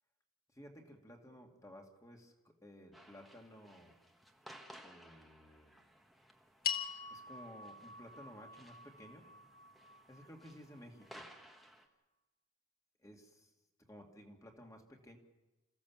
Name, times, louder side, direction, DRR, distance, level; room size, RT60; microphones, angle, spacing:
voice 1, 0.5-3.9 4.8-5.8 7.1-9.3 10.1-11.3 13.0-13.5 13.9-15.2, equal, 15° left, 2 dB, 2.3 m, -55 dB
sound 1, 2.9-11.9, equal, ahead, 1.6 m, -59 dB
sound 2, 6.6-11.1, left 8 dB, 45° left, 2.0 m, -44 dB
28.0 x 15.5 x 7.3 m, 1.1 s
head